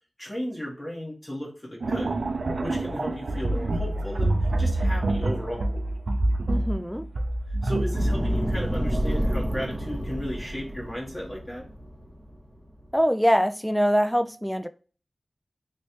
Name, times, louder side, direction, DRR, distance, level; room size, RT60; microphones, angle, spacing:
voice 1, 0.2-2.2 2.6-5.7 7.6-11.6, equal, 25° left, 1.2 m, -35 dB
sound 1, 1.8-8.7, right 2 dB, 85° right, 0.4 m, -27 dB
voice 2, 6.5-7.1 12.9-14.7, equal, ahead, 0.3 m, -23 dB
sound 2, 7.9-13.0, equal, 20° right, 0.8 m, -29 dB
3.1 x 3.1 x 2.8 m
wide cardioid pair, 60°, 0 cm